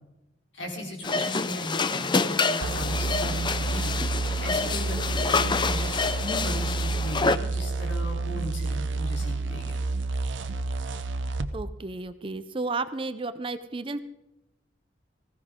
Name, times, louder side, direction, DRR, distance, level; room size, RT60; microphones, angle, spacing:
voice 1, 0.5-5.9 6.2-9.8, left 1 dB, 75° left, 0 dB, 3.8 m, -37 dB
sound 1, 1.0-7.4, left 4 dB, 25° left, 0.5 m, -27 dB
sound 2, 2.6-11.5, right 3 dB, 75° right, 0.8 m, -30 dB
voice 2, 11.5-14.0, right 3 dB, 30° right, 12 dB, 0.5 m, -32 dB
19.5 x 15.5 x 3.7 m, 0.93 s
head